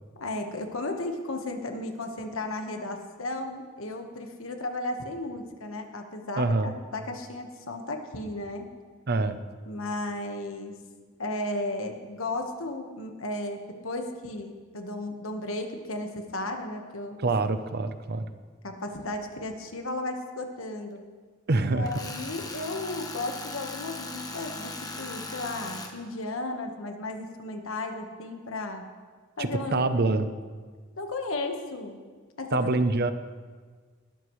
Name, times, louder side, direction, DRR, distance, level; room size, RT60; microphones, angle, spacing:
voice 1, 0.1-8.7 9.7-10.8 11.2-17.2 18.6-21.1 21.7-28.9 29.4-29.9 31.0-32.0 32.4-32.7, left 2 dB, 80° left, 5 dB, 1.4 m, -34 dB
voice 2, 6.4-6.7 9.1-9.4 17.2-18.3 21.5-22.0 29.4-30.3 32.5-33.1, right 2 dB, 50° right, 10 dB, 0.7 m, -25 dB
Tools, 21.9-25.9, left 3 dB, 20° left, 1.2 m, -38 dB
19.5 x 12.5 x 3.2 m, 1.5 s
head